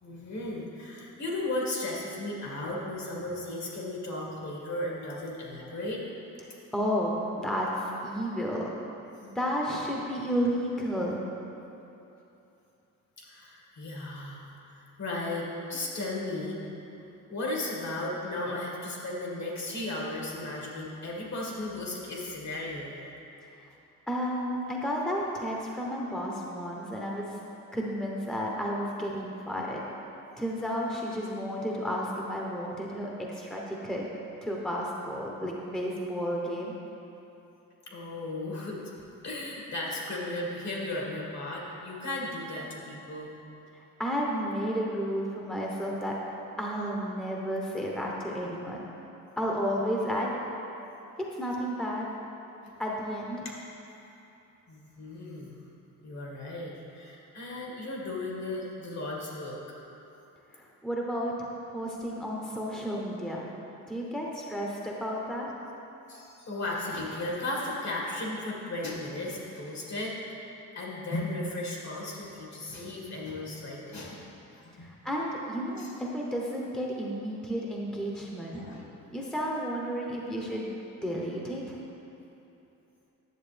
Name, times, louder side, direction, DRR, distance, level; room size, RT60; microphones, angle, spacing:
voice 1, 0.0-6.0 13.2-14.4 14.7-16.6 17.3-22.9 37.9-38.8 39.2-43.4 52.6-52.7 54.7-55.6 56.0-59.6 66.1-70.1 70.8-74.2 74.5-74.9 75.8-75.9 78.5-79.0, left 2 dB, 55° left, -3 dB, 2.0 m, -35 dB
voice 2, 6.7-8.7 9.2-11.2 23.6-23.7 24.1-27.4 27.7-29.8 30.4-34.1 34.4-36.8 43.7-46.2 46.6-48.8 49.4-50.3 51.3-52.1 52.8-53.5 60.5-63.4 63.9-65.5 74.8-78.6 79.1-80.7 81.0-81.8, equal, ahead, -2 dB, 1.0 m, -32 dB
10.5 x 6.8 x 3.4 m, 2.9 s
cardioid pair, 80°, 33 cm